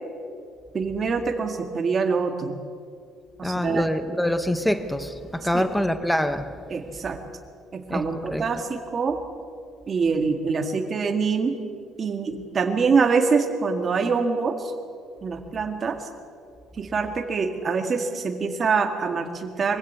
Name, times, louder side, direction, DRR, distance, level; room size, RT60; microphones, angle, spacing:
voice 1, 0.7-2.6 3.4-3.8 5.5-5.6 6.7-7.2 7.7-9.2 9.9-11.6 12.0-14.7 15.2-16.0 16.8-19.8, right 5 dB, 30° right, 1.9 m, -25 dB
voice 2, 3.4-6.6 7.9-8.5, left 1 dB, 5° left, 0.9 m, -25 dB
23.0 x 16.0 x 8.2 m
cardioid pair, 155°, 0 cm